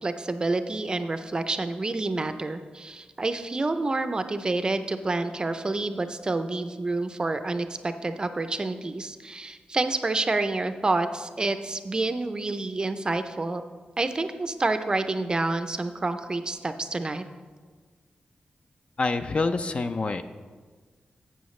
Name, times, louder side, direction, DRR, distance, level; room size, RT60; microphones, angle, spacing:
voice 1, 0.0-13.6 14.0-17.2, right 2 dB, 25° right, 9 dB, 0.5 m, -28 dB
voice 2, 19.0-20.2, left 3 dB, 40° left, 9 dB, 0.4 m, -26 dB
12.0 x 8.0 x 3.1 m, 1.5 s
wide cardioid pair, 150°, 3 cm